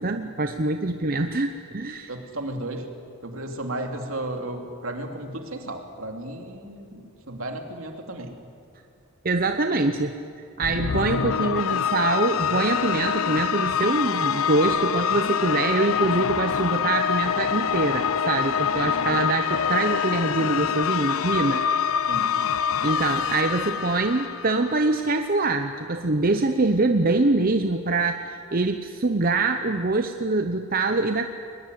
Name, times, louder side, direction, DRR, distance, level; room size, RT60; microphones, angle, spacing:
voice 1, 0.0-2.1 9.2-10.2 10.6-21.6 22.8-31.3, right 2 dB, 40° right, 6 dB, 0.8 m, -24 dB
voice 2, 2.1-2.9 3.2-8.4 18.7-19.1 22.1-22.3, right 1 dB, 70° right, 3 dB, 2.9 m, -34 dB
sound 1, 10.6-25.0, left 7 dB, 75° left, 0.6 m, -25 dB
21.5 x 20.5 x 9.4 m, 2.3 s
head